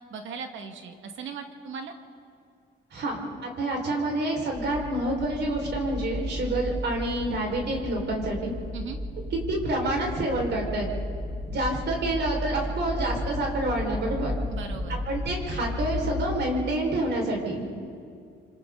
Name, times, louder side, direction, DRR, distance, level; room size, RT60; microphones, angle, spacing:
voice 1, 0.1-1.9 8.7-9.0 14.5-15.0, right 5 dB, 75° right, 5 dB, 2.1 m, -38 dB
voice 2, 2.9-8.5 9.5-10.9 11.5-14.3 14.9-17.7, right 1 dB, 60° right, 0 dB, 5.4 m, -28 dB
sound 1, 4.5-16.3, left 1 dB, 25° left, 4.2 m, -34 dB
27.5 x 26.0 x 4.1 m, 2.3 s
cardioid pair, 90°, 20 cm